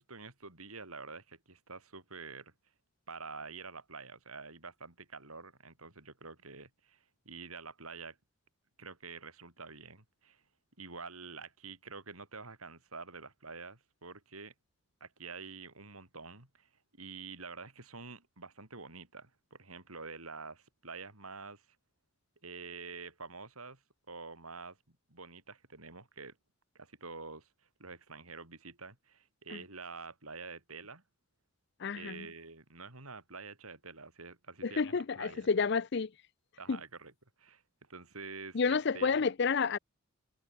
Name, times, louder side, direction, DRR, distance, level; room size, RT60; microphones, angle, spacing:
voice 1, 0.0-2.5 3.1-8.2 8.8-10.4 10.8-14.5 15.0-21.7 22.4-26.4 26.7-31.0 31.9-35.5 36.6-37.1 37.4-39.2, right 4 dB, 85° right, 5.9 m, -48 dB
voice 2, 31.8-32.3 34.6-36.1 36.7-36.8 38.5-39.8, left 5 dB, 50° left, 0.5 m, -30 dB
head